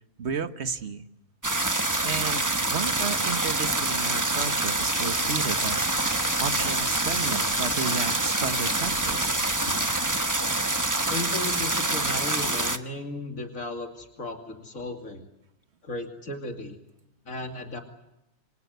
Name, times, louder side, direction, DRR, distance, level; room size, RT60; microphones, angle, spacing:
voice 1, 0.2-1.1 2.0-5.9 6.4-9.3, right 5 dB, 55° right, 10 dB, 1.5 m, -33 dB
sound 1, 1.4-12.8, right 2 dB, 15° right, 1.0 m, -26 dB
Insect, 4.6-10.1, left 2 dB, 65° left, 3.4 m, -40 dB
voice 2, 11.1-15.3 15.8-16.8 17.3-17.8, left 2 dB, 85° left, 4 dB, 3.0 m, -35 dB
28.0 x 24.0 x 8.1 m, 0.88 s
omnidirectional pair, 1.4 m